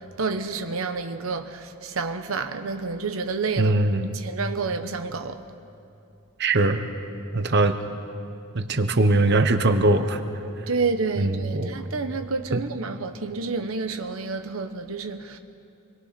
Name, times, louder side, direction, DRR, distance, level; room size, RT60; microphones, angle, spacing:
voice 1, 0.2-3.7 4.1-5.4 10.7-15.4, right 4 dB, 85° right, 1.0 m, -29 dB
voice 2, 3.6-4.2 6.4-6.8 7.3-7.7 8.5-10.2 11.2-11.8 12.5-12.6, right 2 dB, 55° right, 1.1 m, -21 dB
27.5 x 22.5 x 5.9 m
head